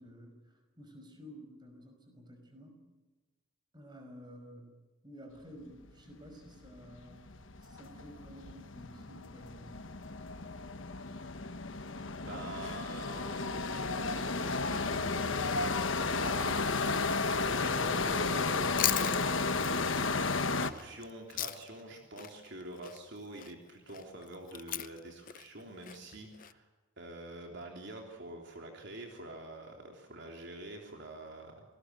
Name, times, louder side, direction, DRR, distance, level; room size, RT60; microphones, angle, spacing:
voice 1, 0.0-2.8 3.7-4.7 5.0-7.3 7.6-9.9, equal, 20° right, 5 dB, 5.5 m, -52 dB
sound 1, 6.5-6.6 6.8-20.7, left 3 dB, 65° left, 1.3 m, -33 dB
voice 2, 12.2-15.5 16.2-16.6 17.4-18.7 20.4-26.7 27.0-31.6, right 1 dB, 55° right, 2 dB, 3.3 m, -46 dB
Chewing mastication, 18.4-21.9 22.2-26.5, left 12 dB, 40° left, 0.7 m, -38 dB
27.5 x 19.5 x 8.0 m, 1.2 s
head